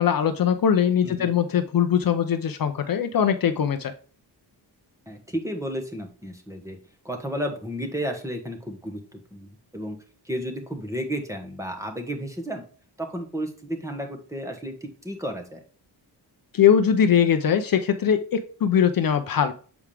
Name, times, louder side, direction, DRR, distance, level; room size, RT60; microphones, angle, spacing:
voice 1, 0.0-3.9 16.5-19.5, left 8 dB, 55° left, 8 dB, 0.6 m, -21 dB
voice 2, 1.0-1.3 5.1-6.8 7.0-10.0 10.2-12.6 13.0-15.6, equal, 5° right, 3 dB, 1.4 m, -32 dB
7.1 x 4.8 x 3.4 m, 0.41 s
wide cardioid pair, 135°, 42 cm